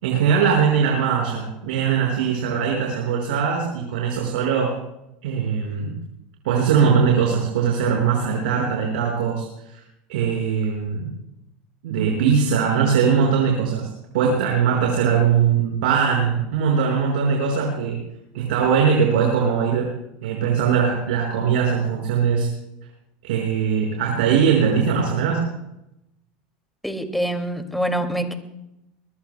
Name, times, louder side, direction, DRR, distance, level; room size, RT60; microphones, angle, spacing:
voice 1, 0.0-4.7 5.2-5.9 6.4-9.5 9.7-9.8 10.1-11.1 11.8-13.9 14.1-18.0 18.3-19.9 20.2-22.5 23.2-25.4, right 6 dB, 85° right, -1 dB, 5.3 m, -20 dB
voice 2, 26.8-28.3, right 1 dB, ahead, 5 dB, 2.3 m, -25 dB
23.5 x 20.5 x 2.2 m, 0.85 s
supercardioid pair, 120°, 5 cm